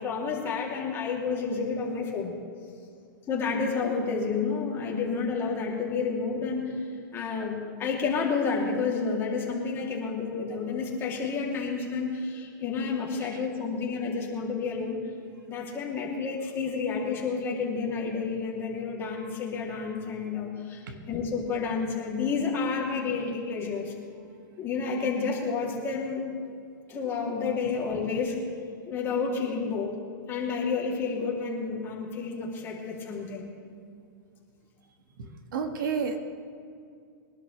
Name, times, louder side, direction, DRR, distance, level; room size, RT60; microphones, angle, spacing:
voice 1, 0.0-2.3 3.3-6.7 7.1-15.0 15.5-23.9 24.6-26.2 26.9-28.4 28.9-30.0 30.3-33.5, left 5 dB, 20° left, -3 dB, 3.2 m, -30 dB
voice 2, 35.5-36.2, right 6 dB, 70° right, 5 dB, 1.9 m, -29 dB
23.0 x 12.0 x 3.4 m, 2.4 s
hypercardioid pair, 150°, 11 cm